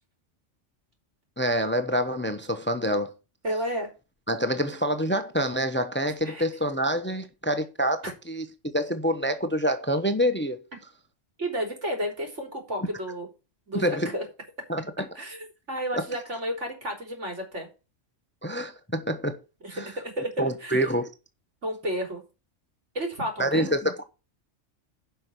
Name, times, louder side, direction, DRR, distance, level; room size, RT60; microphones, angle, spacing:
voice 1, 1.4-3.1 4.3-10.6 12.8-12.9 13.7-14.1 14.7-15.0 18.4-19.4 19.7-19.9 20.4-21.1 23.4-24.0, equal, 10° left, 0.9 m, -26 dB
voice 2, 3.4-3.9 6.2-6.5 8.0-8.1 11.4-13.3 13.7-14.2 15.1-17.7 19.6-20.9 21.6-22.2 22.9-23.7, equal, 75° right, 4.0 m, -32 dB
10.5 x 5.8 x 6.1 m
omnidirectional pair, 1.2 m